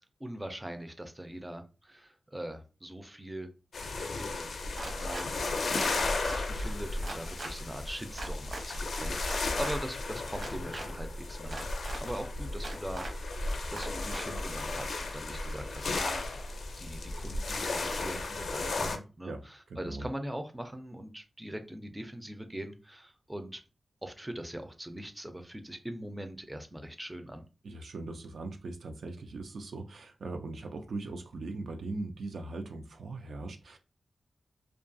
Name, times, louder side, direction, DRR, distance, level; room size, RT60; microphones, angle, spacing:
voice 1, 0.2-3.5 4.2-4.5 4.8-11.7 12.0-23.6 24.0-27.4, right 1 dB, 10° right, 7 dB, 0.4 m, -42 dB
sound 1, 3.7-19.0, left 2 dB, 85° left, 0.4 m, -34 dB
sound 2, 4.8-5.3 5.9-6.4 7.0-7.5 8.2-8.6 9.2-9.8 10.3-10.9 11.5-12.0 12.6-13.1 13.8-14.2, right 2 dB, 65° right, 0.9 m, -40 dB
voice 2, 19.7-20.1 27.6-33.8, right 2 dB, 85° right, 5 dB, 0.4 m, -40 dB
2.6 x 2.3 x 2.5 m, 0.33 s
wide cardioid pair, 95°, 0 cm